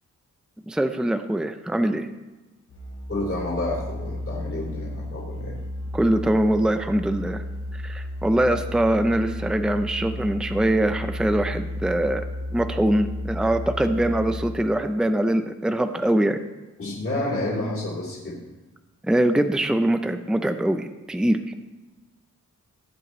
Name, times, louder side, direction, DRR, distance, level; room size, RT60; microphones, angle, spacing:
voice 1, 0.7-2.1 5.9-7.4 7.7-12.2 12.5-16.4 19.0-21.5, right 1 dB, ahead, 8 dB, 0.6 m, -23 dB
Musical instrument, 2.7-14.7, left 1 dB, 80° left, 3.4 m, -33 dB
voice 2, 3.1-5.6 16.8-18.4, left 2 dB, 45° left, -4 dB, 3.1 m, -29 dB
17.0 x 7.5 x 3.2 m, 1.2 s
cardioid pair, 70°, 31 cm